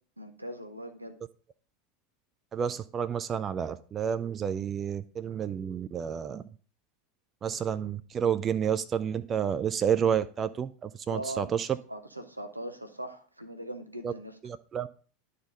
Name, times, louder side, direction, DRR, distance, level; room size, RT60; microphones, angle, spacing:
voice 1, 0.2-1.2 11.1-11.5 11.9-14.4, right 1 dB, 90° right, 7 dB, 0.8 m, -40 dB
voice 2, 2.5-6.5 7.4-11.7 14.0-14.1 14.4-14.9, right 8 dB, 30° right, 13 dB, 0.4 m, -30 dB
11.0 x 4.1 x 3.7 m, 0.41 s
figure-of-eight pair, 80°, 0 cm